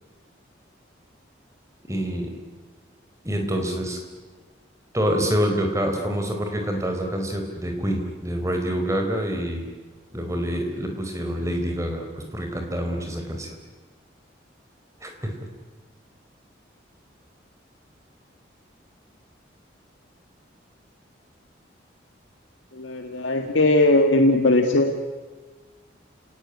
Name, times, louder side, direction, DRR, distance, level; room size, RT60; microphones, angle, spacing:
voice 1, 1.9-2.3 3.2-4.0 4.9-9.7 10.1-13.5 15.0-15.4, equal, 15° right, 3 dB, 4.1 m, -26 dB
voice 2, 22.7-24.9, left 2 dB, 85° left, 5 dB, 1.8 m, -19 dB
29.5 x 18.5 x 10.0 m, 1.4 s
head